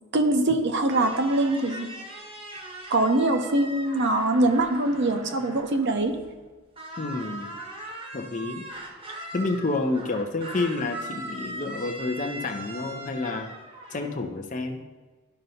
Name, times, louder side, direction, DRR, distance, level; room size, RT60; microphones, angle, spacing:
voice 1, 0.1-1.9 2.9-6.1, right 2 dB, 50° right, 6 dB, 0.7 m, -23 dB
sound 1, 0.9-6.5 6.8-14.1, right 1 dB, 25° right, 0.9 m, -40 dB
voice 2, 7.0-7.5 8.1-8.6 9.3-13.5 13.9-14.8, left 3 dB, 35° left, 5 dB, 0.6 m, -29 dB
12.0 x 5.3 x 2.8 m, 1.3 s
head